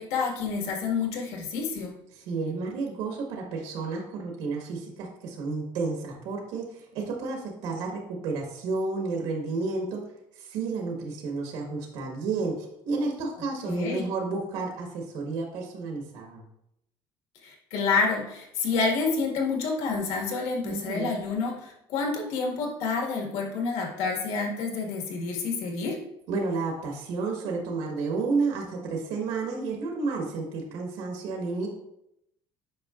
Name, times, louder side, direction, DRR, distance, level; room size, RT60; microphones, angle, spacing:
voice 1, 0.0-1.9 13.7-14.1 17.4-26.0, left 4 dB, 85° left, 0 dB, 1.8 m, -28 dB
voice 2, 2.1-10.0 10.4-16.4 20.6-21.2 26.3-31.7, right 4 dB, 85° right, 0 dB, 1.5 m, -31 dB
8.4 x 5.6 x 2.5 m, 0.80 s
cardioid pair, 180°, 10 cm